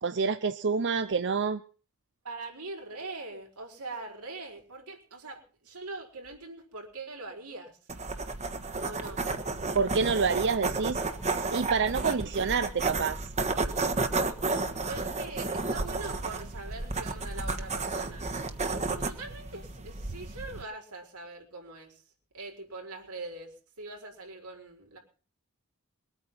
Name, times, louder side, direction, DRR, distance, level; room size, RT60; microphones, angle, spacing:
voice 1, 0.0-1.6 9.7-11.0 11.5-13.2, right 5 dB, 55° right, 11 dB, 0.7 m, -27 dB
voice 2, 2.2-7.8 8.8-9.3 12.0-12.2 14.9-18.3 18.8-22.0 22.3-25.0, right 3 dB, 90° right, 1 dB, 4.9 m, -42 dB
sound 1, 7.9-20.6, right 3 dB, 30° right, 1.4 m, -32 dB
22.5 x 9.1 x 5.7 m, 0.39 s
head